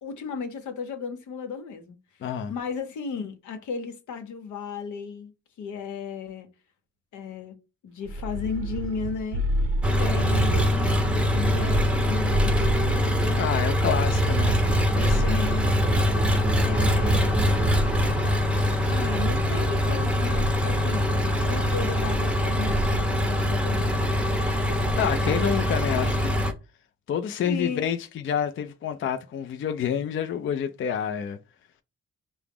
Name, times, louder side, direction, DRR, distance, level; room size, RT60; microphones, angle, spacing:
voice 1, 0.0-5.3 5.6-6.5 7.1-7.5 7.8-9.4 10.0-13.4 15.2-15.7 16.6-17.7 18.9-24.8 27.4-27.9, left 5 dB, 75° left, 0.9 m, -35 dB
voice 2, 2.2-2.5 13.4-14.6 14.9-15.5 25.0-26.3 27.1-31.4, left 8 dB, 45° left, 0.4 m, -28 dB
sound 1, 8.0-10.5 11.0-13.4 13.9-16.0 16.5-18.4 19.0-20.0 20.3-20.8 21.7-22.4 22.7-23.1, right 2 dB, 50° right, 0.5 m, -31 dB
Engine, 9.8-26.5, equal, 5° right, 0.7 m, -23 dB
4.6 x 2.0 x 3.5 m
supercardioid pair, 60°, 30 cm